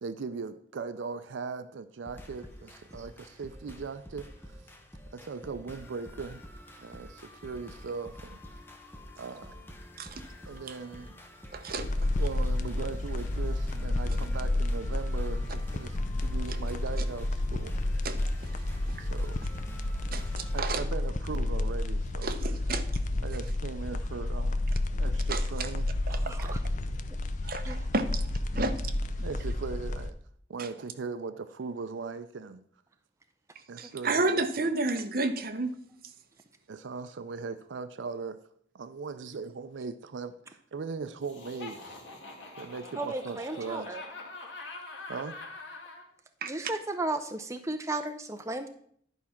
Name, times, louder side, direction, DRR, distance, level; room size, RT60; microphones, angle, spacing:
voice 1, 0.0-4.6 5.1-6.4 6.8-8.4 9.2-9.8 10.5-11.2 12.0-17.8 19.0-19.4 20.5-22.3 23.2-24.7 25.0-25.9 29.2-30.2 30.5-32.6 33.7-34.7 36.7-38.4 38.7-41.8 42.6-43.9 45.1-45.4, right 4 dB, 75° right, 0.4 m, -39 dB
sound 1, 2.1-20.7, equal, 10° left, 1.0 m, -48 dB
voice 2, 11.5-12.1 16.5-16.6 18.0-18.2 19.0-19.1 20.1-20.8 22.2-22.8 25.3-25.7 26.1-26.5 27.4-28.2 28.5-28.9 30.6-30.7 33.8-35.7 46.4-46.5, right 3 dB, 50° right, 0.8 m, -31 dB
sound 2, 11.8-30.1, left 1 dB, 40° left, 0.5 m, -31 dB
voice 3, 26.1-26.6 27.7-27.8 43.0-44.0 46.4-48.7, right 2 dB, 15° right, 0.5 m, -34 dB
Laughter, 41.2-46.0, left 3 dB, 70° left, 2.1 m, -44 dB
11.0 x 4.8 x 5.7 m
head